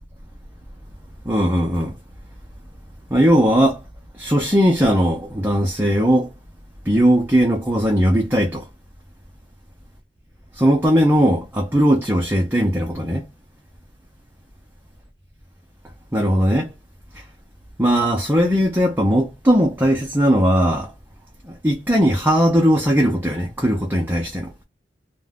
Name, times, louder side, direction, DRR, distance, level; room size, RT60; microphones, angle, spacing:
voice 1, 1.2-2.0 3.1-3.8 4.1-6.3 6.8-8.7 10.5-13.3 16.1-16.7 17.1-17.2 17.8-20.9 21.4-24.5, equal, 10° right, 0.5 m, -18 dB
2.5 x 2.1 x 3.5 m
head